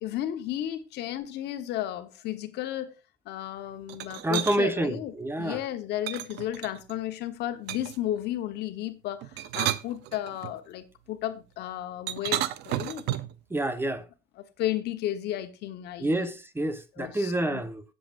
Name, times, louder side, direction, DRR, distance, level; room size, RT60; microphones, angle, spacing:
voice 1, 0.0-2.9 3.2-5.1 5.4-13.0 14.6-16.3 16.9-17.6, left 12 dB, 80° left, 1.2 m, -33 dB
sound 1, 3.9-4.6 6.1-7.0 7.7-8.1 9.2-10.5 12.1-13.4, right 13 dB, 85° right, 0.7 m, -32 dB
voice 2, 4.2-5.6 13.5-14.1 16.0-17.8, right 1 dB, 15° right, 1.0 m, -28 dB
17.5 x 7.8 x 2.6 m
cardioid pair, 110°, 17 cm